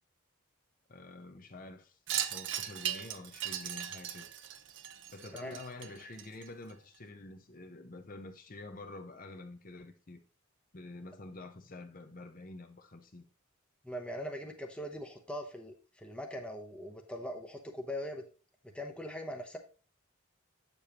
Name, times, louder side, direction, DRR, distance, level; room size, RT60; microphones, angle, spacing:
voice 1, 0.9-4.3 5.1-10.2 10.7-13.3, left 2 dB, 40° left, 0.7 m, -48 dB
Wind chime, 2.1-6.7, right 10 dB, 60° right, 0.6 m, -38 dB
voice 2, 13.8-18.2 18.6-19.6, equal, 5° left, 0.8 m, -41 dB
8.2 x 6.9 x 2.9 m
head